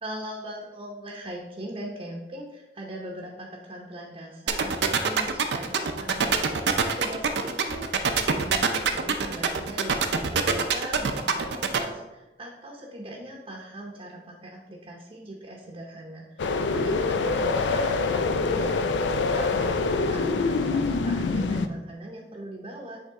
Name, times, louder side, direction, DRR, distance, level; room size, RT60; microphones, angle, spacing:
voice 1, 0.0-7.8 8.2-18.8 19.2-23.0, right 1 dB, 30° right, -1 dB, 0.7 m, -40 dB
sound 1, 4.5-11.8, right 6 dB, 70° right, 0.5 m, -23 dB
sound 2, 16.4-21.7, left 3 dB, 85° left, 0.4 m, -25 dB
8.3 x 3.1 x 3.6 m, 1.1 s
head